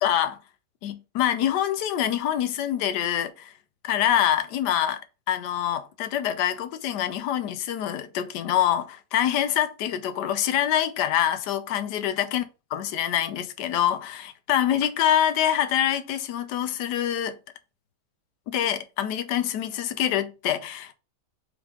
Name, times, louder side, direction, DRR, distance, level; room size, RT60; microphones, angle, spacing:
voice 1, 0.0-0.4 0.8-3.5 3.8-5.0 5.3-12.4 12.7-17.4 18.5-20.9, left 10 dB, 85° left, 1.2 m, -25 dB
3.8 x 3.6 x 3.6 m
omnidirectional pair, 1.8 m